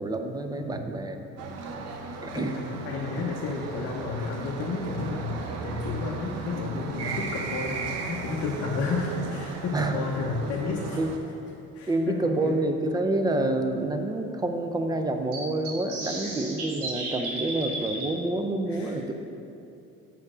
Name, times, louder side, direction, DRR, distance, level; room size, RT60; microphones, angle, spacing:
voice 1, 0.0-1.5 2.2-2.6 9.7-10.0 11.0-11.1 11.9-19.1, right 2 dB, 15° right, 6 dB, 0.3 m, -28 dB
voice 2, 0.5-0.9 2.3-11.0 11.7-12.6 16.1-16.3 18.7-19.1, left 4 dB, 50° left, -1 dB, 0.7 m, -32 dB
sound 1, 1.4-11.2, right 4 dB, 55° right, 0.7 m, -36 dB
sound 2, 11.8-11.9 12.5-12.6 12.8-12.9 15.3-18.1, right 2 dB, 80° right, 1.4 m, -34 dB
6.6 x 4.3 x 4.9 m, 2.7 s
cardioid pair, 125°, 30 cm